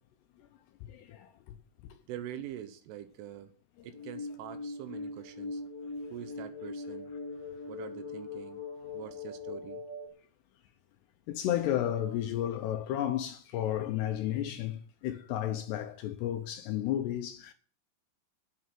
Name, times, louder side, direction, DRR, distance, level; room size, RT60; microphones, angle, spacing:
voice 1, 0.9-1.3 11.3-17.5, left 11 dB, 80° left, 2.5 m, -32 dB
voice 2, 2.1-3.5 3.8-5.6 6.1-7.1 7.7-8.6 8.9-9.8, right 11 dB, 80° right, 3.4 m, -44 dB
sound 1, 3.9-10.1, left 3 dB, 5° left, 3.1 m, -41 dB
11.5 x 6.4 x 9.3 m
omnidirectional pair, 5.8 m